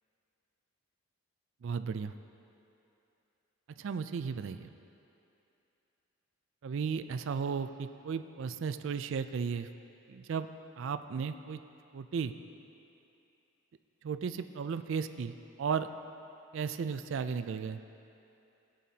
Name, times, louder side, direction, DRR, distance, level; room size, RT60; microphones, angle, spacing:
voice 1, 1.6-2.1 3.8-4.7 6.6-9.7 10.1-10.5 10.8-11.6 11.9-12.3 14.0-15.9 16.5-17.8, right 6 dB, 55° right, 10 dB, 0.3 m, -35 dB
16.5 x 9.1 x 2.8 m, 2.8 s
head